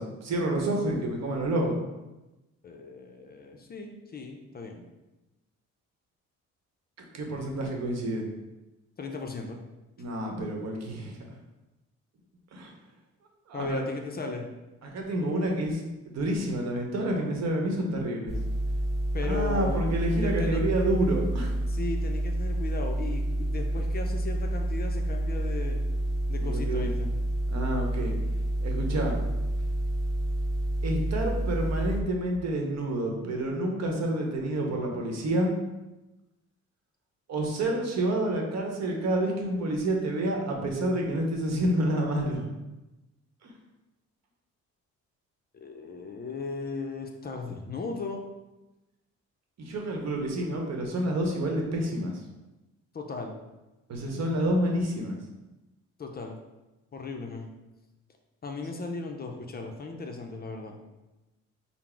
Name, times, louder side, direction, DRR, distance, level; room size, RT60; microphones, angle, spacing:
voice 1, 0.0-1.8 7.1-8.3 10.0-11.2 12.5-12.7 13.5-13.8 14.8-18.4 19.2-21.6 26.4-26.9 27.5-28.1 28.6-29.2 30.8-35.5 37.3-42.5 43.4-43.5 49.6-52.2 53.9-55.2, right 1 dB, 60° right, 1 dB, 0.9 m, -29 dB
voice 2, 2.6-4.8 9.0-9.6 13.5-14.5 19.1-19.8 20.2-20.6 21.7-25.8 26.3-27.1 45.5-48.2 52.9-53.4 56.0-56.4 56.9-57.5 58.4-60.8, left 3 dB, 30° left, 3 dB, 0.5 m, -36 dB
sound 1, 18.3-32.0, right 1 dB, ahead, 0.8 m, -29 dB
3.9 x 2.0 x 4.4 m, 1.0 s
cardioid pair, 90°, 30 cm